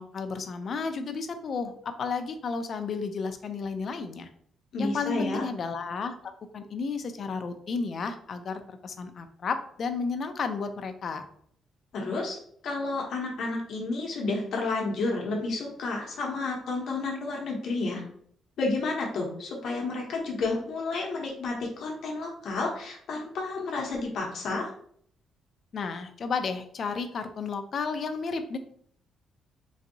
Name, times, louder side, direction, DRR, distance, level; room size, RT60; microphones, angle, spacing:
voice 1, 0.0-4.3 4.8-11.3 25.7-28.6, left 4 dB, 45° left, 8 dB, 0.4 m, -32 dB
voice 2, 4.7-5.4 11.9-12.4 12.6-18.0 18.6-24.7, left 3 dB, 60° left, -1 dB, 0.8 m, -31 dB
3.9 x 2.6 x 2.6 m, 0.63 s
cardioid pair, 145°, 0 cm